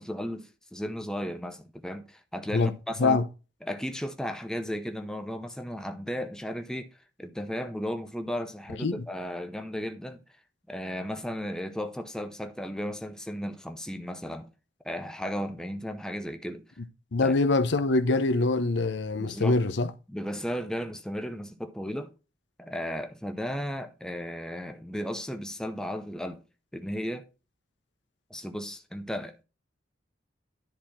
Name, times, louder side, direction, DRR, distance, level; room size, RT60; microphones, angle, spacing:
voice 1, 0.0-3.2 3.6-6.9 7.2-10.2 10.7-14.5 14.8-16.7 17.2-17.3 19.2-19.6 20.1-22.1 22.6-26.4 26.7-27.3 28.3-29.4, equal, 5° left, 0.6 m, -35 dB
voice 2, 17.1-19.9, left 3 dB, 70° left, 0.7 m, -24 dB
10.5 x 4.1 x 4.3 m
head